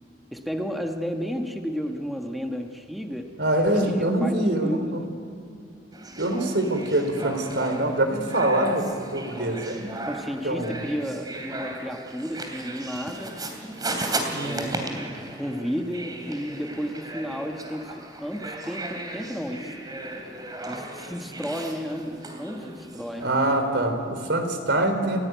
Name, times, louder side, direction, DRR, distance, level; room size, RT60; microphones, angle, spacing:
voice 1, 0.3-3.3 3.9-5.1 10.1-13.4 14.4-19.7 20.7-23.3, equal, ahead, 3 dB, 1.3 m, -33 dB
voice 2, 3.4-5.0 6.2-9.9 10.4-10.7 14.3-14.6 23.2-25.2, right 1 dB, 80° right, 6 dB, 3.9 m, -24 dB
sound 1, 5.9-23.6, right 2 dB, 25° right, 3.1 m, -36 dB
29.5 x 16.0 x 9.3 m, 2.6 s
head